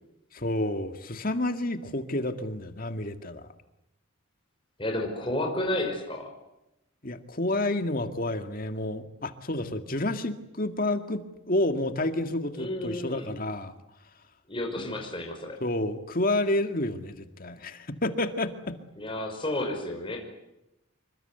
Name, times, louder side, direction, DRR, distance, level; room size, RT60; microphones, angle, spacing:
voice 1, 0.3-3.5 7.0-13.7 14.8-14.9 15.6-18.8, left 1 dB, 45° left, 8 dB, 2.1 m, -30 dB
voice 2, 4.8-6.3 12.6-13.3 14.5-15.6 19.0-20.2, left 1 dB, 25° left, 1 dB, 5.4 m, -31 dB
27.5 x 24.5 x 8.1 m, 0.89 s
head